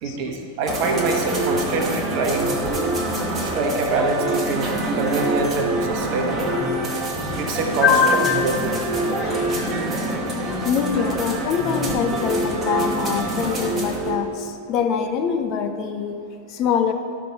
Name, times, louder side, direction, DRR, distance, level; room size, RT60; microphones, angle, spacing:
voice 1, 0.0-2.8 3.4-4.7 4.9-6.6 7.4-7.9 8.4-8.8 11.0-11.1, right 3 dB, 45° right, 3 dB, 1.1 m, -25 dB
sound 1, 0.7-14.2, right 1 dB, 25° right, 1.3 m, -25 dB
voice 2, 7.8-8.7 9.2-16.9, left 7 dB, 40° left, 6 dB, 0.6 m, -24 dB
13.0 x 5.7 x 3.7 m, 2.5 s
figure-of-eight pair, 90°, 0 cm